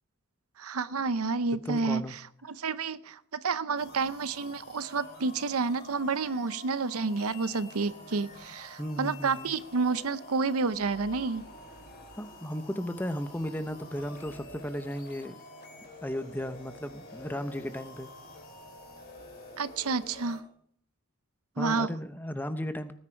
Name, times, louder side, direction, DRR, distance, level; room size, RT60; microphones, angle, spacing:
voice 1, 0.6-2.2 2.6-11.4 19.6-20.4 21.6-21.9, right 4 dB, 90° right, 14 dB, 0.7 m, -30 dB
voice 2, 1.6-2.1 8.8-9.5 12.2-15.4 16.0-18.1 21.6-22.9, equal, 10° left, 10 dB, 0.8 m, -35 dB
sound 1, 3.8-20.4, left 2 dB, 45° left, 3.4 m, -48 dB
18.5 x 10.0 x 4.5 m, 0.65 s
head